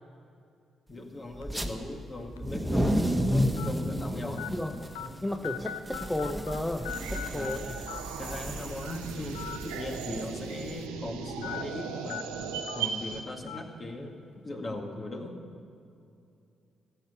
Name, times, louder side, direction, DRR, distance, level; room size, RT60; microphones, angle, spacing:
voice 1, 0.9-4.4 7.3-7.5 8.2-12.2 12.8-15.4, left 1 dB, 40° left, 2 dB, 2.0 m, -39 dB
sound 1, 1.4-1.6 2.4-2.5 3.6-3.7 4.4-4.5 4.9-5.1 5.4-6.6 6.8-7.6 7.9-8.0 9.3-9.6 9.9-10.0 11.4-11.6 12.1-12.2 12.7-12.8 13.5-13.6, left 11 dB, 85° left, 0.5 m, -38 dB
sound 2, 1.4-1.7 2.3-10.8, equal, 5° right, 1.5 m, -32 dB
voice 2, 4.1-4.7 5.2-7.8, left 1 dB, 15° left, 4 dB, 0.9 m, -34 dB
sound 3, 6.9-13.2, right 6 dB, 80° right, 0.9 m, -38 dB
14.5 x 7.2 x 9.7 m, 2.5 s
hypercardioid pair, 40°, 0 cm